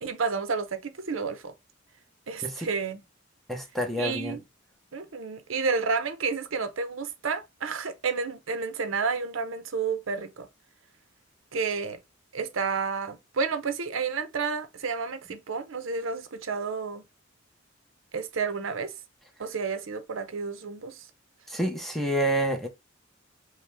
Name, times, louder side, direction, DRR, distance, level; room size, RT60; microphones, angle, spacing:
voice 1, 0.0-1.5 2.3-3.0 4.0-4.4 4.9-10.5 11.5-12.0 12.3-17.0 18.1-18.9 19.4-21.0, right 5 dB, 90° right, 0.7 m, -30 dB
voice 2, 3.5-4.4 21.5-22.7, right 1 dB, ahead, 0.8 m, -28 dB
5.3 x 2.2 x 3.3 m
head